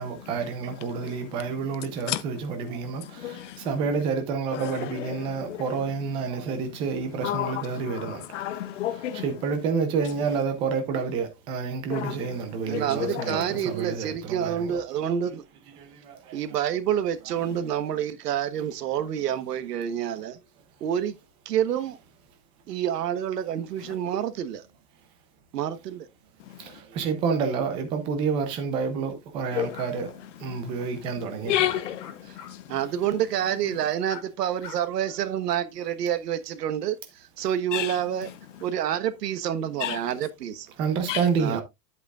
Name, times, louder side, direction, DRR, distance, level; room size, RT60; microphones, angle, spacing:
voice 1, 0.0-8.2 9.1-14.8 15.1-15.3 15.8-16.2 26.6-30.1 30.4-31.7 40.8-41.6, right 5 dB, 10° right, 0.6 m, -29 dB
voice 2, 3.0-3.7 4.5-5.8 6.4-6.5 7.2-9.3 11.9-12.2 12.7-13.7 26.4-26.7 29.5-30.1 30.5-30.7 31.4-32.8 37.7-38.0 39.8-40.0 41.1-41.3, left 12 dB, 50° left, 0.8 m, -32 dB
voice 3, 12.7-15.4 16.3-20.4 20.8-21.1 21.4-22.0 22.7-24.6 25.5-26.1 32.7-38.3 38.6-40.7 41.4-41.6, right 10 dB, 90° right, 1.4 m, -28 dB
sound 1, 29.6-29.9 31.7-32.5 32.9-33.0 34.1-34.2 34.6-35.2, left 7 dB, 90° left, 3.0 m, -43 dB
9.8 x 8.2 x 2.4 m
supercardioid pair, 175°, 46 cm